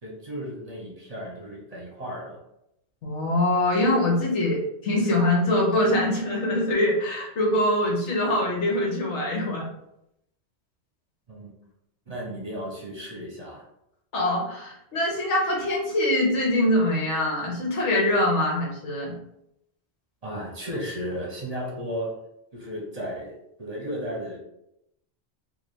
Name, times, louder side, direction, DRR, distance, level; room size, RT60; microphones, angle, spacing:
voice 1, 0.0-2.4 11.3-11.5 12.1-13.6 20.2-22.2 22.5-24.4, equal, 35° right, -3 dB, 1.0 m, -34 dB
voice 2, 3.0-9.6 14.1-19.1, left 1 dB, 80° left, -2 dB, 1.4 m, -23 dB
3.3 x 2.8 x 4.1 m, 0.81 s
omnidirectional pair, 1.2 m